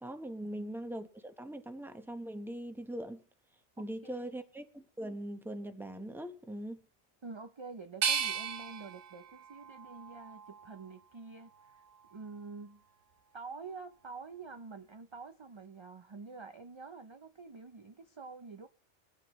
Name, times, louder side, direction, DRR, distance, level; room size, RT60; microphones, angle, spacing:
voice 1, 0.0-3.2 3.8-6.8, right 1 dB, ahead, 0.8 m, -41 dB
voice 2, 3.8-4.4 7.2-11.8 12.1-12.8 13.3-18.7, right 4 dB, 35° right, 0.5 m, -47 dB
sound 1, 8.0-10.9 11.5-12.3, right 7 dB, 90° right, 1.2 m, -37 dB
22.5 x 9.1 x 3.1 m
omnidirectional pair, 1.2 m